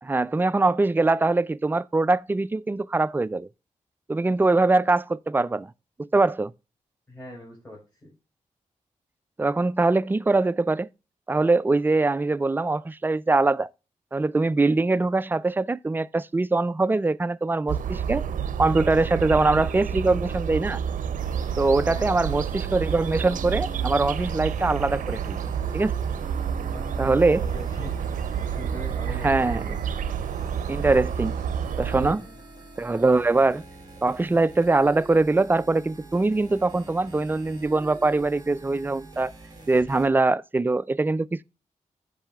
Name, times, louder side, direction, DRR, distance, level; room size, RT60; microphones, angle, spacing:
voice 1, 0.0-3.5 4.1-5.7 6.0-6.5 9.4-10.9 11.3-13.7 14.1-18.3 18.6-20.8 21.6-25.9 27.0-27.4 29.2-29.7 30.7-31.3 31.8-32.3 32.8-33.6 34.0-39.3 39.7-41.4, right 3 dB, 15° right, 0.3 m, -22 dB
voice 2, 7.1-8.1 21.8-22.1 26.4-28.0 28.5-29.8 32.1-32.4, left 1 dB, 10° left, 4.2 m, -42 dB
sound 1, 17.7-32.1, right 8 dB, 90° right, 0.5 m, -29 dB
Piano, 18.8-25.5, right 2 dB, 50° left, 4.0 m, -53 dB
sound 2, 21.2-40.1, right 2 dB, 30° right, 3.5 m, -44 dB
14.5 x 5.5 x 2.3 m
cardioid pair, 80°, 13 cm